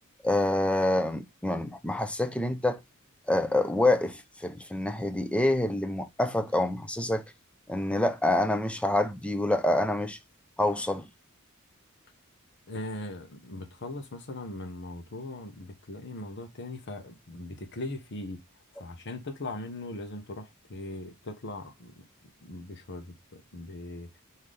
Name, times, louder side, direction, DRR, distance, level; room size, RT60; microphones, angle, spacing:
voice 1, 0.2-2.8 3.3-7.2 7.7-10.2 10.6-11.1, left 1 dB, 5° left, 0.5 m, -27 dB
voice 2, 12.7-18.4 18.8-22.0 22.4-24.1, left 2 dB, 55° left, 0.9 m, -39 dB
5.6 x 2.7 x 3.2 m
head